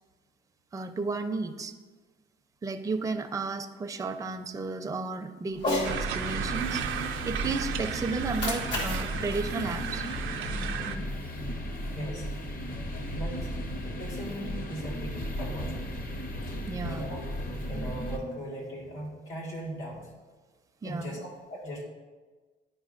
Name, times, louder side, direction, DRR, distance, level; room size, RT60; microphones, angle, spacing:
voice 1, 0.7-1.7 2.6-6.8 7.2-10.1 16.7-17.1 20.8-21.2, right 4 dB, 15° right, 7 dB, 0.4 m, -33 dB
Cat, 5.5-6.0 8.1-10.5, left 2 dB, 65° left, 1.6 m, -34 dB
sound 1, 5.8-18.2, equal, 45° left, 0.9 m, -35 dB
sound 2, 5.8-11.0, right 8 dB, 90° right, 0.5 m, -35 dB
voice 2, 11.9-12.3 13.1-13.5 14.0-16.0 16.8-17.3 17.7-20.1 20.8-21.8, equal, 85° left, -3 dB, 1.9 m, -39 dB
10.5 x 4.9 x 2.4 m, 1.3 s
cardioid pair, 90°, 20 cm